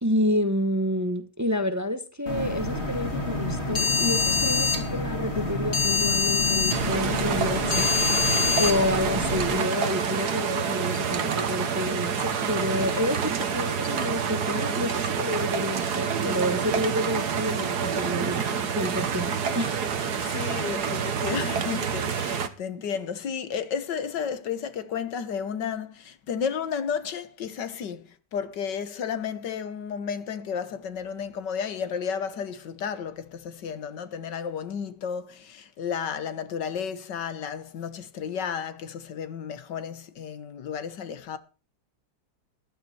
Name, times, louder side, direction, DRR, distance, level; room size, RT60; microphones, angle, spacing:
voice 1, 0.0-7.9 8.6-19.8, left 1 dB, 10° right, 1.0 m, -29 dB
sound 1, 2.3-9.6, left 4 dB, 35° left, 3.2 m, -26 dB
sound 2, 6.7-22.5, right 6 dB, 65° right, 1.9 m, -28 dB
voice 2, 20.1-41.4, left 7 dB, 80° left, 1.9 m, -32 dB
14.0 x 11.5 x 4.4 m
omnidirectional pair, 1.9 m